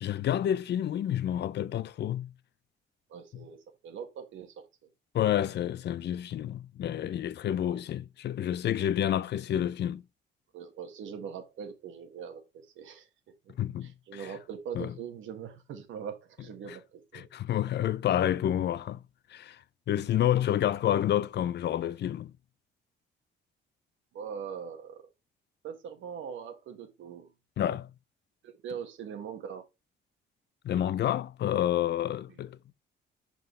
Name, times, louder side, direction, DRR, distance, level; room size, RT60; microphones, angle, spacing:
voice 1, 0.0-2.3 5.1-10.0 13.6-14.3 14.8-14.9 16.7-16.8 17.1-19.0 19.3-19.6 19.9-22.3 27.6-27.9 30.6-32.6, left 11 dB, 60° left, 0.5 m, -29 dB
voice 2, 3.1-4.5 7.6-7.8 10.5-13.1 13.4-13.5 13.8-17.3 24.1-25.1 25.6-27.3 28.4-29.6 32.3-32.4, right 7 dB, 75° right, 1.6 m, -42 dB
6.0 x 5.6 x 3.2 m
cardioid pair, 90°, 20 cm